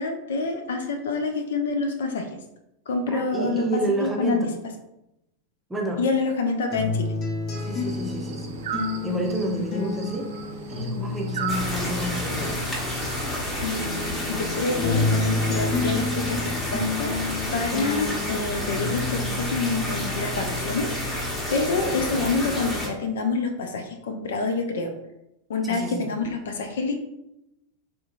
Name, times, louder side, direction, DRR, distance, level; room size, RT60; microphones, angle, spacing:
voice 1, 0.0-2.3 2.9-3.7 4.0-4.4 6.0-7.1 13.6-17.2 17.5-24.9 25.5-26.9, left 3 dB, 60° left, 5 dB, 0.4 m, -27 dB
voice 2, 3.1-4.5 5.7-6.0 7.7-8.4 9.0-10.3 10.7-12.6 25.7-26.1, right 1 dB, 10° right, 0 dB, 0.6 m, -29 dB
sound 1, 6.7-13.4 13.7-21.4 21.7-22.7, left 3 dB, 35° left, 0.7 m, -31 dB
sound 2, 7.5-13.4, right 5 dB, 60° right, 0.4 m, -36 dB
sound 3, 11.5-22.9, left 1 dB, 15° left, 1.0 m, -30 dB
3.6 x 2.7 x 2.5 m, 0.86 s
figure-of-eight pair, 90°, 0 cm